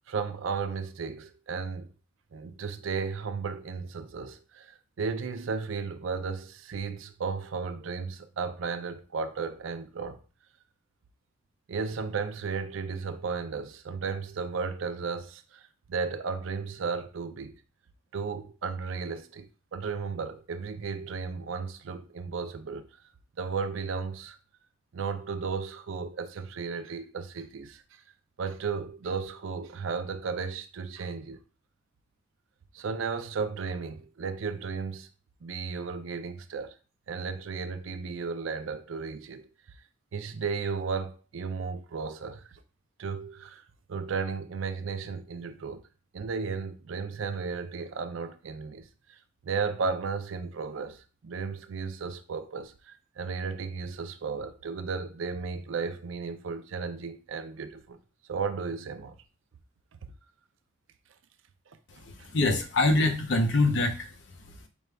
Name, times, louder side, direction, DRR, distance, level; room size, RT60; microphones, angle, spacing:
voice 1, 0.1-1.9 2.3-10.2 11.7-17.6 18.1-22.9 23.4-24.4 24.9-27.8 28.4-31.4 32.7-35.1 35.4-36.8 37.1-39.5 40.1-42.6 43.0-43.6 43.9-45.8 46.1-49.2 49.4-58.0 58.3-59.2 61.9-62.3, right 5 dB, 75° right, 0.4 m, -34 dB
voice 2, 61.9-64.7, left 2 dB, 60° left, 0.7 m, -26 dB
5.2 x 2.3 x 3.2 m
head